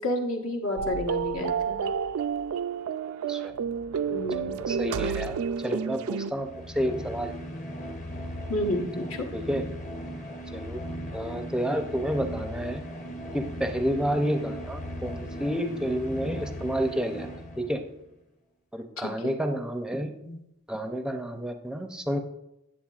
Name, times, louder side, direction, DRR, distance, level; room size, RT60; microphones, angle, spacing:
voice 1, 0.0-1.9 4.1-4.5 8.5-9.2 19.0-19.3 20.2-20.4, left 1 dB, 65° left, 2 dB, 1.1 m, -30 dB
sound 1, 0.8-6.3, right 6 dB, 70° right, 0.3 m, -30 dB
voice 2, 4.7-7.3 9.3-9.6 10.5-10.8 11.1-12.8 13.3-17.3 17.6-17.8 18.7-20.1 20.7-22.2, equal, 5° right, 5 dB, 0.5 m, -30 dB
sound 2, 6.3-17.9, equal, 35° left, 0.9 m, -37 dB
8.7 x 7.5 x 2.4 m, 0.89 s
head